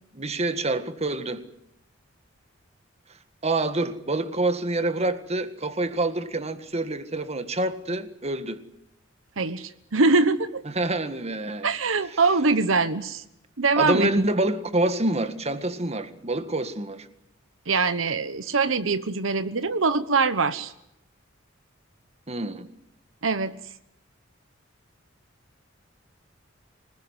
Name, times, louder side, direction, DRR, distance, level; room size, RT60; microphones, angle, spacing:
voice 1, 0.1-1.4 3.4-8.6 10.8-11.7 13.8-17.1 22.3-22.7, right 2 dB, 35° right, 1.8 m, -27 dB
voice 2, 9.4-10.6 11.6-13.2 13.6-14.1 17.7-20.7 23.2-23.5, right 4 dB, 80° right, 1.1 m, -23 dB
25.0 x 20.5 x 9.7 m
head